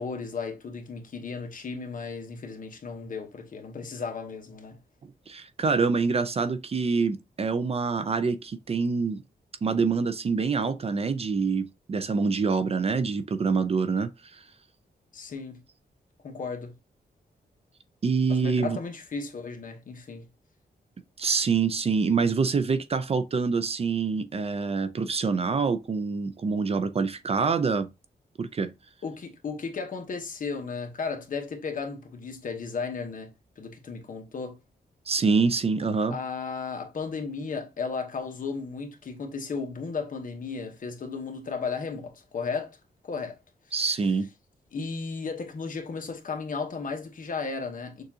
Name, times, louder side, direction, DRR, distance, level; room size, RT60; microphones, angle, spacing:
voice 1, 0.0-4.8 15.1-15.6 16.2-16.7 18.3-20.2 29.0-33.3 33.6-34.6 36.1-42.8 43.0-43.4 44.7-48.0, left 4 dB, 55° left, 1.0 m, -34 dB
voice 2, 5.3-9.2 9.6-14.4 18.0-18.8 21.2-27.9 28.4-28.7 35.1-36.2 43.7-44.3, right 5 dB, 35° right, 0.4 m, -26 dB
6.5 x 2.4 x 2.8 m
wide cardioid pair, 140°, 17 cm